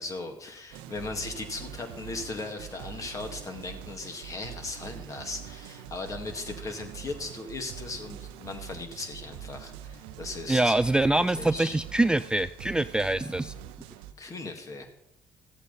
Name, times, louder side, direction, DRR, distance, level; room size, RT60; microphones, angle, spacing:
voice 1, 0.0-10.7 11.4-11.8 14.2-14.9, left 3 dB, 40° left, 5 dB, 2.1 m, -38 dB
sound 1, 0.7-14.1, right 10 dB, 90° right, 0.7 m, -44 dB
voice 2, 10.5-13.5, right 2 dB, 10° right, 13 dB, 0.3 m, -24 dB
14.0 x 8.1 x 4.1 m, 0.87 s
supercardioid pair, 80°, 9 cm